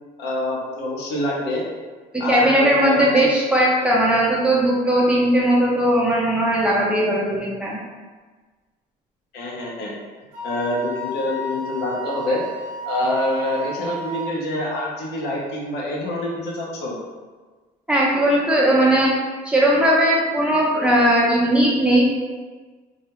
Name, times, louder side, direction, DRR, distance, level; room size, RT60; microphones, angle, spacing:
voice 1, 0.2-1.6 2.2-3.3 9.3-9.9 10.4-12.4 12.8-17.0, left 1 dB, 80° left, -3 dB, 0.6 m, -26 dB
voice 2, 2.1-7.8 17.9-19.1 19.4-22.1, right 1 dB, 5° right, -5 dB, 0.5 m, -18 dB
Wind instrument woodwind instrument, 10.3-14.3, right 2 dB, 55° right, 0.6 m, -32 dB
2.2 x 2.0 x 2.8 m, 1.4 s
cardioid pair, 110°, 17 cm